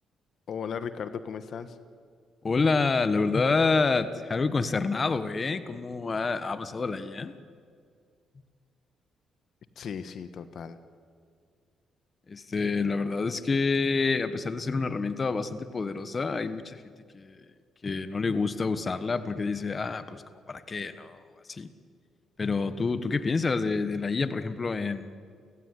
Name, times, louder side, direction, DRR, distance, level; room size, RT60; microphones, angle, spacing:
voice 1, 0.5-1.8 9.8-10.8, left 7 dB, 60° left, 12 dB, 1.3 m, -36 dB
voice 2, 2.4-7.3 12.3-16.8 17.1-17.4 17.8-20.2 20.5-21.2 21.5-21.7 22.4-25.1, left 4 dB, 35° left, 12 dB, 1.3 m, -28 dB
29.5 x 16.0 x 10.0 m, 2.1 s
cardioid pair, 90°, 0 cm